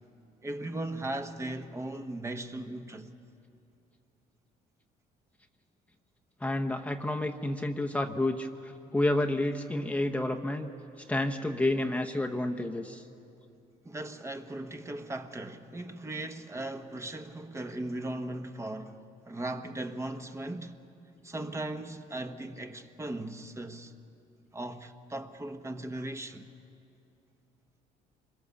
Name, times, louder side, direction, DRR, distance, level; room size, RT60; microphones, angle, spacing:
voice 1, 0.4-3.1 13.8-20.8 21.2-23.9 24.5-26.4, right 1 dB, 15° right, 1.1 m, -38 dB
voice 2, 6.4-10.7 11.1-13.0, left 1 dB, 10° left, 0.9 m, -30 dB
25.0 x 21.5 x 7.0 m
cardioid pair, 110°, 17 cm